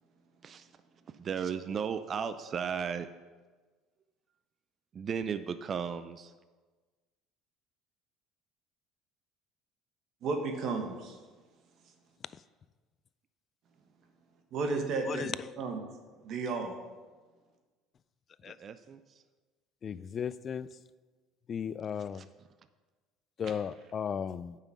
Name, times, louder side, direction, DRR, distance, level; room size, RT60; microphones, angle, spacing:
voice 1, 1.1-3.1 4.9-6.3 18.4-19.2 22.0-22.5, right 7 dB, 40° right, 11 dB, 0.4 m, -36 dB
voice 2, 10.2-11.2 14.5-15.8 16.2-16.8 23.4-23.5, right 4 dB, 55° right, 4 dB, 1.5 m, -33 dB
voice 3, 19.8-20.7 21.5-22.2 23.4-24.6, left 7 dB, 40° left, 17 dB, 0.3 m, -35 dB
9.1 x 5.7 x 6.1 m, 1.3 s
supercardioid pair, 100°, 0 cm